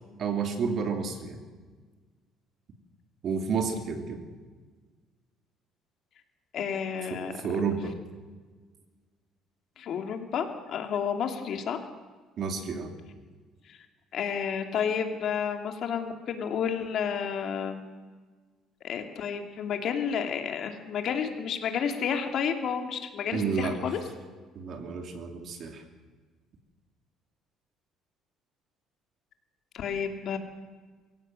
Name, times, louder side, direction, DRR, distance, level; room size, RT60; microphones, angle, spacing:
voice 1, 0.2-1.4 3.2-4.2 7.1-7.9 12.4-12.9 23.3-23.7 24.5-25.8, right 5 dB, 45° right, 5 dB, 3.0 m, -30 dB
voice 2, 6.5-7.3 9.8-11.8 13.7-13.8 14.1-17.8 18.8-24.0 29.7-30.4, left 7 dB, 50° left, 5 dB, 2.6 m, -31 dB
23.5 x 16.5 x 7.7 m, 1.4 s
cardioid pair, 140°, 0 cm